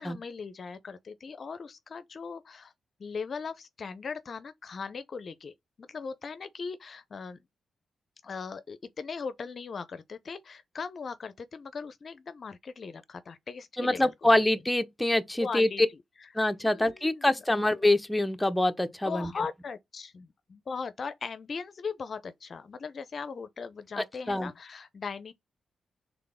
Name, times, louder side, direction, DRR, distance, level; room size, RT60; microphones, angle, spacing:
voice 1, 0.0-2.7 3.0-5.5 5.8-7.4 8.2-14.4 15.4-15.8 16.7-17.3 19.1-25.3, left 5 dB, 55° left, 0.5 m, -39 dB
voice 2, 13.8-15.7 16.3-19.3 24.0-24.5, left 1 dB, 10° left, 0.8 m, -25 dB
3.7 x 3.4 x 3.6 m
supercardioid pair, 45°, 0 cm